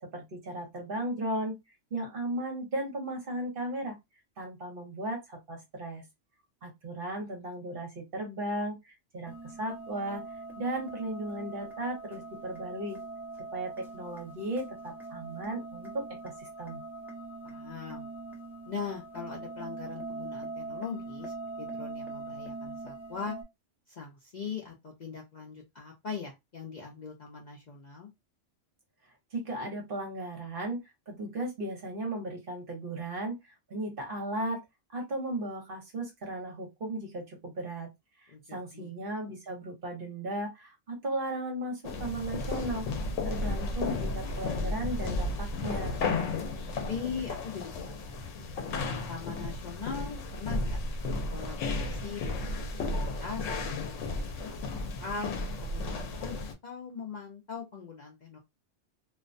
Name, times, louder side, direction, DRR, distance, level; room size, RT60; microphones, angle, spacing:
voice 1, 0.0-1.6 1.9-4.0 4.4-6.0 6.6-13.0 13.5-16.8 29.3-30.8 31.1-34.6 34.9-37.9 38.2-42.9 43.2-46.0, right 1 dB, 50° right, 2 dB, 0.9 m, -36 dB
sound 1, 9.3-23.4, right 3 dB, ahead, 0.5 m, -42 dB
voice 2, 17.4-18.1 18.7-23.4 23.9-28.1 38.3-38.9 46.7-48.5 49.1-53.5 53.8-54.1 54.5-58.4, left 5 dB, 50° left, -1 dB, 0.6 m, -41 dB
sound 2, 41.8-56.5, left 2 dB, 80° left, 0.9 m, -33 dB
2.4 x 2.1 x 2.5 m, 0.20 s
omnidirectional pair, 1.3 m